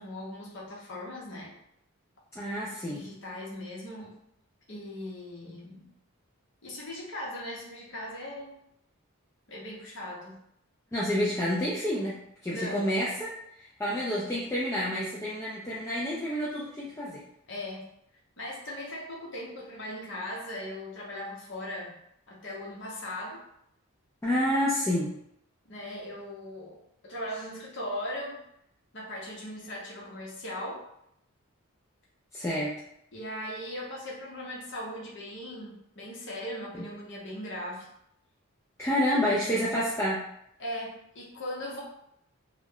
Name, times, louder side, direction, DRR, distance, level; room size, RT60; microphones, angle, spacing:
voice 1, 0.0-1.5 2.9-4.2 4.7-5.9 6.6-8.6 9.5-10.4 12.5-12.9 14.1-14.4 17.5-17.9 18.4-21.9 22.3-23.4 25.7-28.4 28.9-30.8 33.1-37.9 40.6-41.8, left 1 dB, 55° left, -4 dB, 0.8 m, -39 dB
voice 2, 2.3-3.1 10.9-12.2 12.4-13.3 13.6-17.2 24.2-25.1 32.3-32.8 38.8-40.2, equal, 10° left, -8 dB, 0.3 m, -29 dB
2.3 x 2.1 x 3.5 m, 0.75 s
head